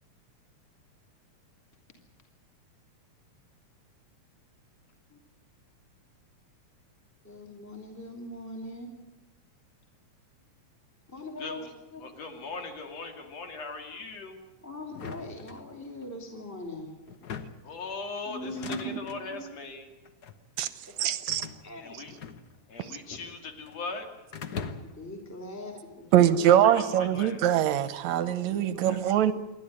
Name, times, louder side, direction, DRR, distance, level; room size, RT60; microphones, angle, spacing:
voice 1, 7.2-8.9 11.1-11.6 11.9-12.0 14.6-16.9 18.3-19.4 21.6-21.9 24.8-26.9 28.4-28.9, left 1 dB, 5° left, 2.5 m, -41 dB
voice 2, 11.4-11.7 12.0-14.4 17.6-19.9 21.8-22.2 22.7-24.1 26.4-26.8 27.1-27.4 28.8-29.0, left 3 dB, 55° left, 3.6 m, -39 dB
sound 1, 14.9-16.1 17.1-17.7 18.4-19.2 20.0-20.4 21.3-22.8 23.0-23.8 24.3-25.1, left 6 dB, 90° left, 0.8 m, -41 dB
voice 3, 21.0-21.5 26.1-29.3, right 11 dB, 70° right, 2.1 m, -23 dB
28.5 x 11.5 x 9.9 m
omnidirectional pair, 3.6 m